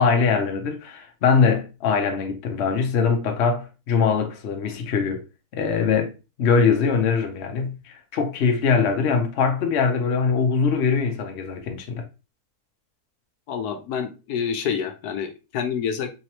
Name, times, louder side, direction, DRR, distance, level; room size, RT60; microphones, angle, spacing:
voice 1, 0.0-5.2 5.5-6.1 6.4-12.0, left 5 dB, 55° left, 0.8 m, -22 dB
voice 2, 13.5-16.1, left 7 dB, 75° left, 1.1 m, -28 dB
3.8 x 3.0 x 2.9 m
omnidirectional pair, 1.7 m